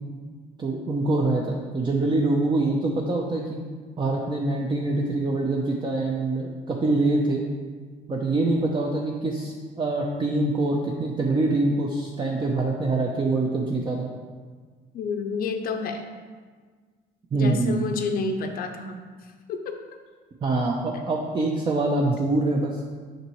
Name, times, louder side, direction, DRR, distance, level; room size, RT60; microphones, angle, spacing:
voice 1, 0.6-3.6 4.0-7.4 8.1-14.1 17.3-17.8 20.4-22.8, right 2 dB, 25° right, -1 dB, 0.6 m, -24 dB
voice 2, 14.9-16.0 17.3-19.0 19.5-19.8, left 4 dB, 60° left, 5 dB, 0.6 m, -29 dB
6.6 x 5.6 x 3.1 m, 1.5 s
cardioid pair, 110°, 17 cm